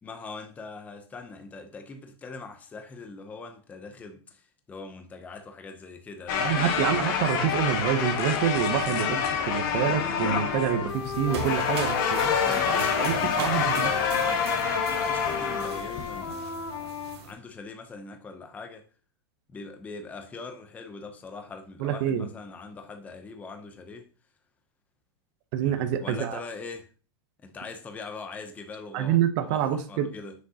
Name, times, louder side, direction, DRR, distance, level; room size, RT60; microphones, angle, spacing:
voice 1, 0.0-7.2 12.4-14.4 15.0-16.9 17.2-18.8 19.5-24.1 25.6-26.9 27.4-30.3, left 4 dB, 10° left, 0.6 m, -42 dB
sound 1, 6.3-16.3, left 6 dB, 50° left, 1.2 m, -27 dB
voice 2, 6.4-12.4 12.7-13.9 21.8-22.3 25.5-26.4 28.9-30.1, right 10 dB, 40° right, 0.7 m, -27 dB
Wind instrument woodwind instrument, 9.4-13.1 13.3-17.2, left 6 dB, 70° left, 1.9 m, -34 dB
sound 2, 10.9-17.3, right 6 dB, 70° right, 1.8 m, -40 dB
7.3 x 6.3 x 2.8 m
supercardioid pair, 160°, 14 cm